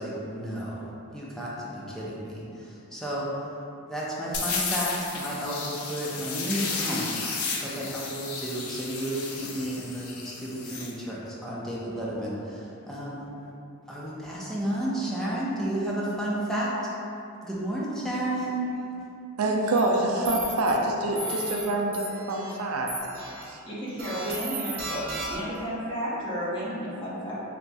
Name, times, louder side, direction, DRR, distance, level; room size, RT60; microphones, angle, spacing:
voice 1, 0.0-3.5 3.9-7.1 7.6-13.2 13.9-16.7 17.4-18.6, right 1 dB, ahead, -7 dB, 0.5 m, -32 dB
sound 1, 4.3-10.9, left 4 dB, 80° left, 0.5 m, -33 dB
voice 2, 19.4-22.9 23.5-23.6, right 2 dB, 75° right, 1 dB, 0.4 m, -26 dB
sound 2, 19.7-19.8 20.2-20.7 21.1-21.6 21.9-22.5 22.9-23.4 24.0-25.6, right 1 dB, 45° right, 0.8 m, -35 dB
voice 3, 23.7-25.0 25.3-27.4, equal, 25° left, -8 dB, 0.8 m, -32 dB
3.4 x 2.3 x 4.0 m, 2.7 s
head